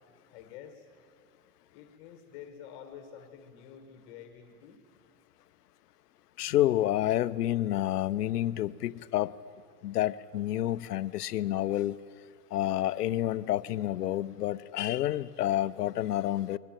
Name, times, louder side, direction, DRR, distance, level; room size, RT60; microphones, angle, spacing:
voice 1, 0.3-0.8 1.7-4.8, left 8 dB, 25° left, 1.4 m, -48 dB
voice 2, 6.4-9.3 9.8-12.0 12.5-16.6, left 13 dB, 70° left, 0.8 m, -29 dB
22.5 x 18.5 x 9.0 m
supercardioid pair, 170°, 50 cm